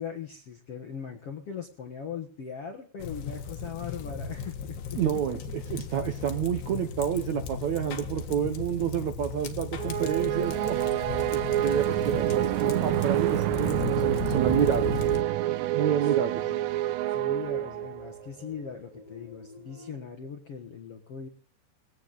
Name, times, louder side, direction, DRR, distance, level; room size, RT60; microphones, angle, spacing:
voice 1, 0.0-5.0 6.8-6.9 11.9-12.1 16.0-16.6 17.1-21.3, left 7 dB, 60° left, 2 dB, 1.6 m, -40 dB
sound 1, 3.0-15.2, left 5 dB, 75° left, 3.6 m, -36 dB
voice 2, 5.0-10.9 11.3-14.9 15.7-16.4, right 9 dB, 70° right, 6 dB, 1.8 m, -29 dB
sound 2, 7.2-16.8 17.8-20.0, equal, 55° right, 5.0 m, -50 dB
sound 3, 9.8-18.2, right 14 dB, 85° right, 3.0 m, -27 dB
20.5 x 17.0 x 4.1 m, 0.42 s
omnidirectional pair, 4.8 m